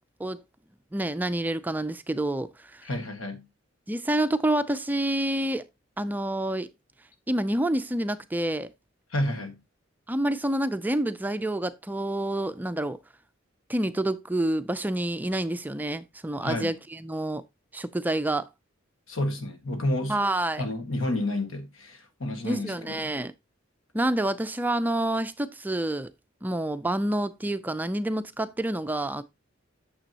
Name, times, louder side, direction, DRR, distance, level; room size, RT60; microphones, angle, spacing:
voice 1, 0.9-2.9 3.9-5.6 6.0-6.7 7.3-8.7 10.1-13.0 13.7-17.4 17.7-18.5 20.1-20.6 22.4-23.3 23.9-26.1 26.4-29.2, right 1 dB, 10° right, 0.4 m, -28 dB
voice 2, 2.8-3.5 9.1-9.6 16.4-16.7 19.1-20.2 20.6-23.1, left 1 dB, 85° left, 1.6 m, -30 dB
9.0 x 6.8 x 2.8 m
head